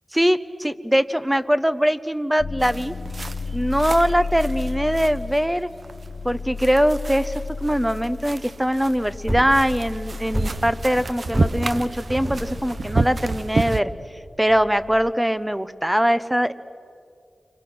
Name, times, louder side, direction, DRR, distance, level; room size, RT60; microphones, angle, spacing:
voice 1, 0.1-2.9 3.5-5.7 6.2-13.9 14.4-16.5, equal, 10° right, 13 dB, 0.9 m, -22 dB
sound 1, 2.4-15.1, left 4 dB, 85° left, 0.9 m, -34 dB
sound 2, 2.6-13.8, right 3 dB, 55° right, 0.8 m, -30 dB
sound 3, 9.0-14.9, right 1 dB, 25° right, 5.7 m, -30 dB
29.5 x 24.5 x 6.3 m, 2.4 s
wide cardioid pair, 70°, 0 cm